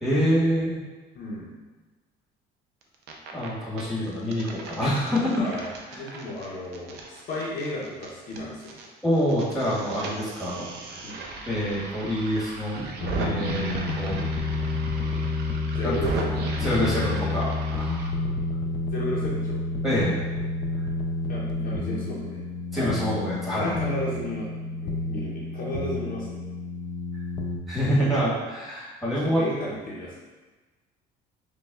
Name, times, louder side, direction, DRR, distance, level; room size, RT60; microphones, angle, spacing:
voice 1, 0.0-0.8 3.3-5.4 5.9-6.0 9.0-11.0 11.5-12.9 13.2-14.2 15.8-15.9 16.5-18.1 19.8-20.4 22.7-23.7 27.7-29.4, equal, ahead, -9 dB, 1.4 m, -26 dB
voice 2, 1.1-1.5 5.4-5.6 5.9-8.8 11.0-11.2 15.7-16.3 18.8-19.6 21.3-22.4 22.8-22.9 23.5-24.5 24.8-26.4 29.2-30.1, left 1 dB, 45° left, -6 dB, 0.7 m, -33 dB
sound 1, 2.8-3.5 3.8-8.9 9.1-18.1, right 4 dB, 65° right, 0.5 m, -37 dB
sound 2, 13.0-27.6, left 3 dB, 25° left, 0.4 m, -30 dB
5.2 x 2.3 x 2.4 m, 1.3 s
cardioid pair, 135°, 19 cm